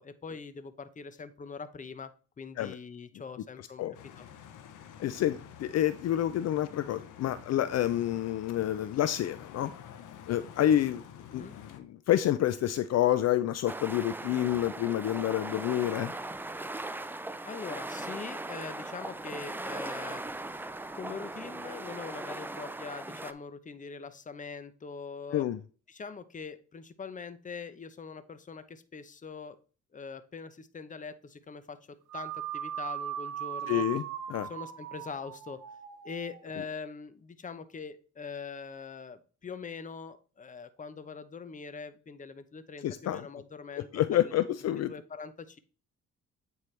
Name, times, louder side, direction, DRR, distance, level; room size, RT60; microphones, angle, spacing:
voice 1, 0.0-2.1 2.4-3.8 4.2-4.3 11.3-11.6 17.4-20.2 20.9-25.5 25.9-29.6 29.9-31.8 32.1-33.8 34.5-35.6 36.0-43.9 44.2-44.3 44.9-45.6, left 5 dB, 25° left, 12 dB, 0.7 m, -42 dB
sound 1, 3.9-11.8, left 9 dB, 85° left, 0.9 m, -49 dB
voice 2, 5.0-9.7 10.3-16.1 25.3-25.6 33.7-34.0 34.3-34.5 42.8-43.3 43.9-44.9, left 12 dB, 60° left, 12 dB, 0.5 m, -28 dB
sound 2, 13.7-23.3, right 2 dB, 5° right, 0.4 m, -39 dB
sound 3, 32.1-36.6, right 10 dB, 70° right, 1.0 m, -39 dB
8.4 x 4.6 x 3.2 m, 0.37 s
cardioid pair, 90°, 30 cm